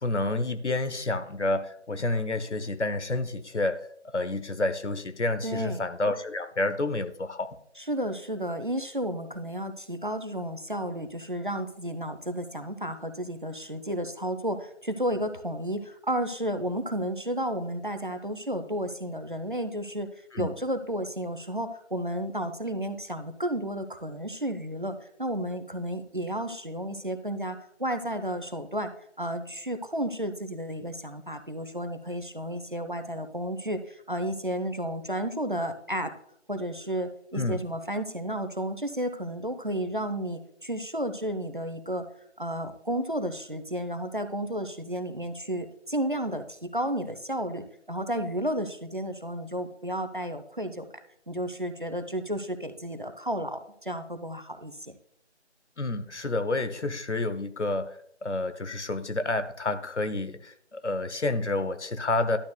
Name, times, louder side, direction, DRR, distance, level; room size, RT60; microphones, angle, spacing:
voice 1, 0.0-3.8 4.1-7.6 20.3-20.5 37.3-37.6 55.8-62.4, left 2 dB, 75° left, 11 dB, 0.9 m, -29 dB
voice 2, 5.4-5.8 7.8-20.1 20.4-28.9 29.2-36.1 36.5-42.0 42.4-50.9 51.3-54.9, equal, 45° right, 9 dB, 0.7 m, -32 dB
12.0 x 7.8 x 2.3 m, 0.70 s
figure-of-eight pair, 175°, 35 cm